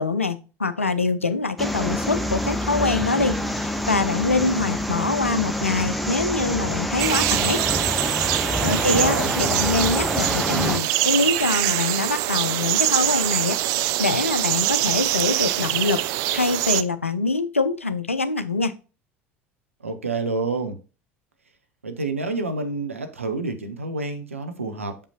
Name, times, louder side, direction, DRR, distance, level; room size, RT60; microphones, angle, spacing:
voice 1, 0.0-7.6 8.6-13.6 14.0-16.0 16.3-18.7, left 3 dB, 85° left, 0.5 m, -24 dB
sound 1, 1.6-10.8, equal, ahead, 0.8 m, -26 dB
sound 2, 7.0-16.8, right 15 dB, 50° right, 0.4 m, -24 dB
voice 2, 8.7-9.3 19.8-20.8 21.8-25.0, right 3 dB, 85° right, 0.8 m, -28 dB
6.8 x 5.3 x 2.8 m
figure-of-eight pair, 70°, 7 cm